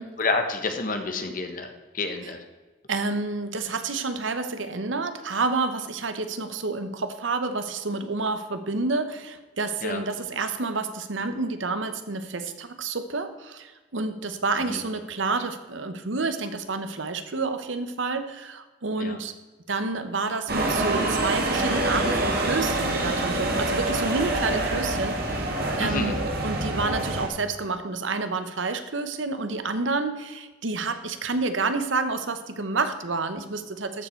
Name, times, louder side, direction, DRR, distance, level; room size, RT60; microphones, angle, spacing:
voice 1, 0.2-2.4 9.8-10.0 14.7-14.8 19.0-19.2 25.8-26.1, left 3 dB, 45° left, 6 dB, 1.2 m, -29 dB
voice 2, 2.9-19.3 19.7-25.5 25.8-34.1, right 3 dB, 75° right, 9 dB, 1.0 m, -29 dB
sound 1, 20.5-27.3, right 2 dB, 50° right, 1.8 m, -26 dB
13.5 x 6.9 x 4.5 m, 1.2 s
head